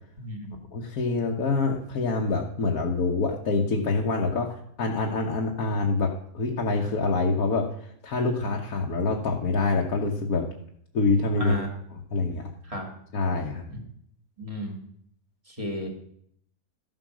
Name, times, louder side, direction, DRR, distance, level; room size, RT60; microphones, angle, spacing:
voice 1, 0.2-0.6 11.4-11.7 12.6-12.9 13.7-13.8 14.4-14.8 15.5-15.9, equal, 20° right, 2 dB, 2.4 m, -33 dB
voice 2, 0.7-10.5 10.9-11.6 12.1-12.5 13.1-13.7, left 3 dB, 65° left, -1 dB, 1.5 m, -26 dB
13.5 x 7.7 x 6.2 m, 0.69 s
omnidirectional pair, 1.7 m